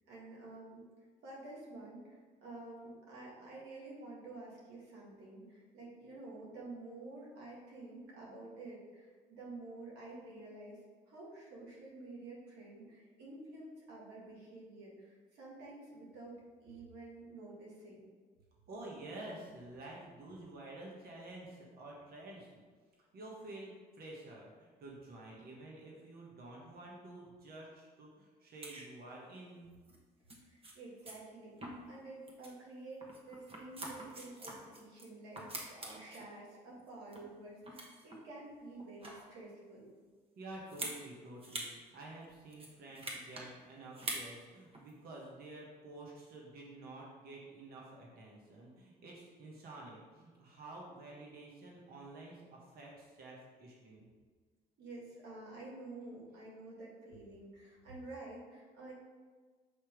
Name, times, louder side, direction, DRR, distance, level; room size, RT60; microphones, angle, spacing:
voice 1, 0.1-0.8 1.2-10.8 11.1-18.0 30.4-39.9 54.8-58.9, right 2 dB, 85° right, -4 dB, 1.8 m, -50 dB
voice 2, 18.7-22.5 23.0-29.7 40.4-54.1, right 2 dB, 65° right, -3 dB, 1.3 m, -50 dB
sound 1, 28.6-28.9 29.9-30.0 30.3-30.4 30.6-30.7 31.1-31.2 31.6-32.0 32.3-32.5 33.0-35.1 35.4-36.3 36.8-37.3 37.6-38.2 38.8-39.3 40.7-41.0 41.4-41.7 42.0-42.1 42.5-43.5 43.9-44.3 44.7-44.9, right 1 dB, 35° right, 1.3 m, -44 dB
6.5 x 2.9 x 5.0 m, 1.5 s
supercardioid pair, 70°, 17 cm